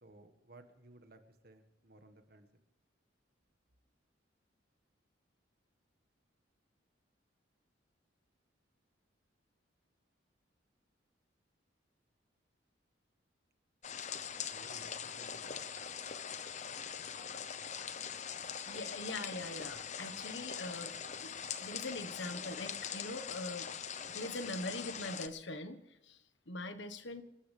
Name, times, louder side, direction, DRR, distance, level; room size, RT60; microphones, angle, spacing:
voice 1, 0.0-2.5 14.5-15.7, right 2 dB, 50° right, 8 dB, 1.7 m, -58 dB
sound 1, 13.8-25.3, left 7 dB, 35° left, 0.8 m, -42 dB
voice 2, 18.7-20.9 21.2-21.3 21.6-23.7 24.1-27.2, left 2 dB, 70° left, 10 dB, 1.3 m, -42 dB
28.0 x 12.5 x 3.5 m, 0.96 s
head